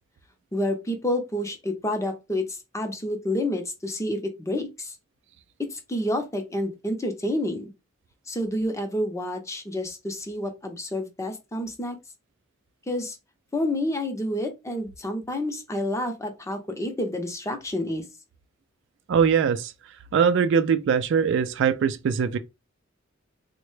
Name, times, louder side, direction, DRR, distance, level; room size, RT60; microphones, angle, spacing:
voice 1, 0.5-5.0 5.7-7.7 8.3-12.0 12.9-13.2 13.5-18.0, left 1 dB, 15° left, 0.6 m, -29 dB
voice 2, 19.1-19.7 20.1-22.4, right 7 dB, 60° right, 0.3 m, -21 dB
3.7 x 2.1 x 3.1 m
head